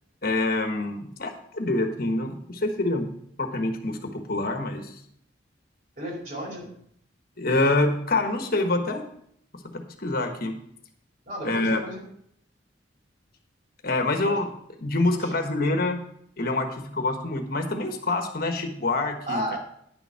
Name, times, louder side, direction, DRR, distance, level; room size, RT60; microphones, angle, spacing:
voice 1, 0.2-3.1 3.4-5.0 7.4-9.1 9.5-10.6 11.4-11.8 13.8-14.5 14.8-16.0 16.4-19.4, left 2 dB, 55° left, 5 dB, 1.3 m, -26 dB
voice 2, 6.0-6.7 11.3-12.0 14.2-14.4 15.1-15.3 19.3-19.6, equal, 50° right, -3 dB, 4.8 m, -33 dB
10.0 x 7.1 x 5.6 m, 0.70 s
head